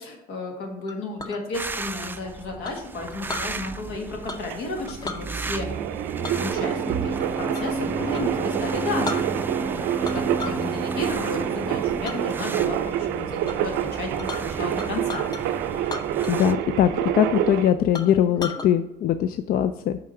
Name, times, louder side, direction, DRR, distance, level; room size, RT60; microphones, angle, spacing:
voice 1, 0.0-5.7 6.4-9.2 9.6-9.9 10.1-15.7, left 2 dB, 85° left, 1 dB, 1.7 m, -33 dB
Chink clink, 0.9-1.4 2.6-3.5 4.3-4.6 4.9-5.2 6.2-7.8 8.1-8.3 8.7-8.8 9.0-9.7 10.0-10.7 11.0-11.4 12.0-12.2 12.7-13.1 13.4-13.6 13.8-15.4 15.8-16.6 16.9-17.0 17.5-17.6 17.9-18.7, left 3 dB, 25° left, 0.7 m, -35 dB
sound 1, 1.5-16.5, right 3 dB, 10° right, 0.4 m, -33 dB
sound 2, 3.1-17.7, right 11 dB, 90° right, 0.5 m, -28 dB
voice 2, 16.3-20.0, left 10 dB, 60° left, 10 dB, 0.4 m, -21 dB
6.1 x 4.8 x 5.7 m, 0.90 s
cardioid pair, 110°, 17 cm